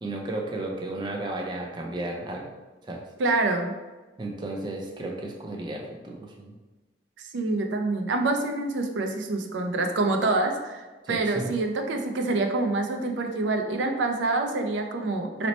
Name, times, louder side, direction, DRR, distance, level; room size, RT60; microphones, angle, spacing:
voice 1, 0.0-2.5 2.8-3.0 4.2-6.6 11.0-11.5, right 2 dB, 25° right, 0 dB, 0.3 m, -33 dB
voice 2, 3.2-3.7 7.2-15.5, right 2 dB, 90° right, 4 dB, 0.4 m, -26 dB
2.9 x 2.0 x 4.0 m, 1.2 s
head